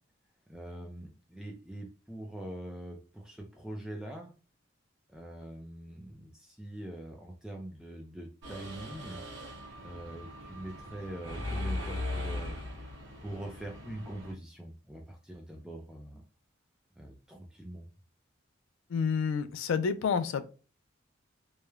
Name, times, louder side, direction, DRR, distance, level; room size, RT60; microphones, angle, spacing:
voice 1, 0.5-4.3 5.1-9.2 9.8-12.5 13.2-16.2 17.0-17.8, right 1 dB, 5° right, 0.3 m, -43 dB
Mechanisms, 8.4-14.3, left 1 dB, 65° right, 1.0 m, -39 dB
voice 2, 18.9-20.4, left 6 dB, 80° left, 0.3 m, -29 dB
3.1 x 2.0 x 2.2 m
head